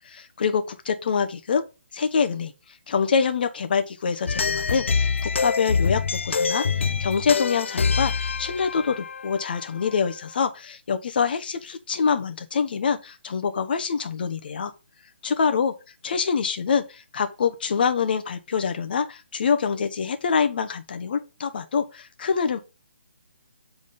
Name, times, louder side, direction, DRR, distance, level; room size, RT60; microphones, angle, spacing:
voice 1, 0.1-1.6 1.9-2.5 2.9-14.7 15.2-15.7 16.0-22.6, left 6 dB, 50° left, 1.1 m, -25 dB
sound 1, 4.3-10.1, left 5 dB, 80° left, 0.5 m, -25 dB
7.7 x 3.8 x 5.2 m
hypercardioid pair, 160°, 7 cm